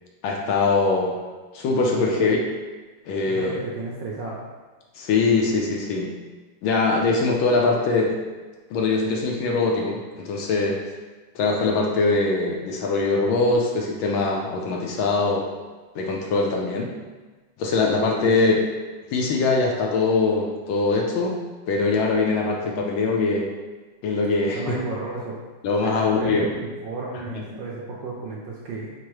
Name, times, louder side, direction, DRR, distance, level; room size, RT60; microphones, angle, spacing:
voice 1, 0.2-1.2 1.5-2.4 3.1-3.6 5.0-6.1 6.6-8.1 8.7-10.8 11.3-15.5 15.9-16.9 17.6-18.5 19.1-23.5 24.0-24.8 25.6-26.5 27.3-27.4, left 3 dB, 75° left, -1 dB, 1.3 m, -22 dB
voice 2, 3.3-4.4 18.1-18.6 24.5-25.4 25.8-28.9, right 3 dB, 75° right, -3 dB, 1.1 m, -33 dB
4.6 x 2.0 x 4.6 m, 1.3 s
omnidirectional pair, 2.4 m